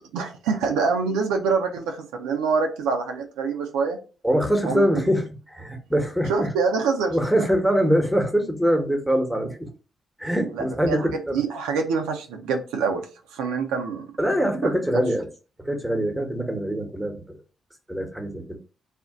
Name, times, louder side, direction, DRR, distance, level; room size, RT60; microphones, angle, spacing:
voice 1, 0.0-4.0 4.6-5.1 6.3-7.1 10.5-13.0 13.3-14.1 14.6-14.7, right 5 dB, 85° right, 3 dB, 0.4 m, -25 dB
voice 2, 4.2-6.5 7.1-9.7 10.2-11.4 14.2-15.3 15.6-17.4 17.9-18.6, equal, 5° right, 4 dB, 1.0 m, -23 dB
2.5 x 2.1 x 3.6 m, 0.33 s
hypercardioid pair, 45°, 0 cm